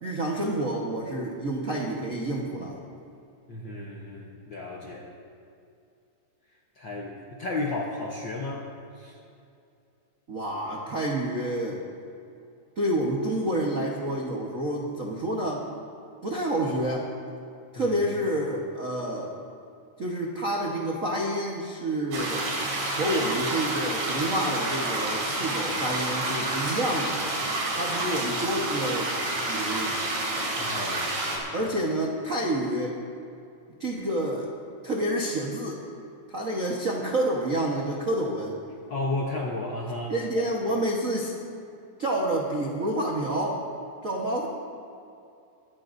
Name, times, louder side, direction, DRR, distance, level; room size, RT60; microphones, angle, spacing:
voice 1, 0.0-2.8 10.3-11.8 12.8-15.7 16.2-17.1 17.7-19.3 20.0-22.5 22.9-27.2 27.7-29.1 29.4-30.0 31.5-33.0 33.8-34.5 34.8-35.8 36.3-38.6 40.1-41.3 42.0-43.6 44.0-44.5, right 1 dB, 60° right, -2 dB, 0.8 m, -28 dB
voice 2, 3.5-5.1 6.7-9.2 17.7-18.1 30.6-31.2 31.6-31.7 38.9-40.5, left 2 dB, 60° left, -2 dB, 1.2 m, -33 dB
sound 1, 22.1-31.4, right 2 dB, 80° right, 4.2 m, -29 dB
23.5 x 14.0 x 2.7 m, 2.6 s
omnidirectional pair, 3.5 m